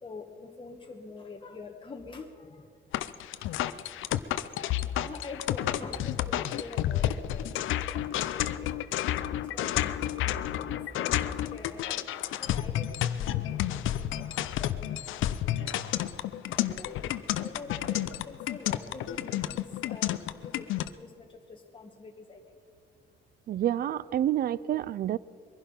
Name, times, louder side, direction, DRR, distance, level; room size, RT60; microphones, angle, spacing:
voice 1, 0.0-2.7 3.3-4.0 5.0-7.7 7.9-8.0 8.3-8.7 9.5-11.2 11.5-12.0 12.4-15.8 16.7-17.0 17.4-20.7 21.0-22.6, left 3 dB, 25° left, 2 dB, 1.3 m, -45 dB
sound 1, 2.9-20.9, left 12 dB, 85° left, 0.6 m, -31 dB
voice 2, 23.5-25.2, right 11 dB, 50° right, 21 dB, 0.4 m, -28 dB
22.0 x 11.5 x 5.4 m, 2.3 s
cardioid pair, 90°, 20 cm